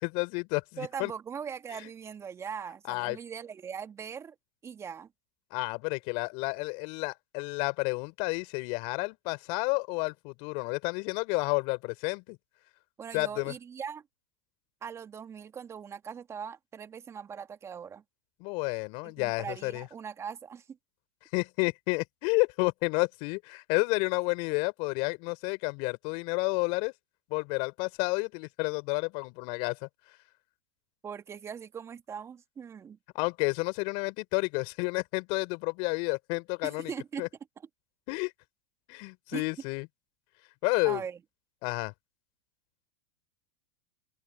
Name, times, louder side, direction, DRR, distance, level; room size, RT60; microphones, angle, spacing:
voice 1, 0.0-1.1 2.8-3.2 5.5-12.4 13.1-13.5 18.4-19.9 21.3-26.9 27.3-29.9 33.1-36.9 37.2-37.3 38.1-38.3 38.9-39.9 40.6-41.0 41.6-41.9, left 30 dB, 55° left, 4.1 m, -30 dB
voice 2, 0.8-4.4 4.6-5.1 13.0-14.0 14.8-18.0 19.0-20.8 31.0-33.0 36.6-37.3 39.3-39.4 40.8-41.2, right 7 dB, 25° right, 2.1 m, -40 dB
open air
hypercardioid pair, 100°, 11 cm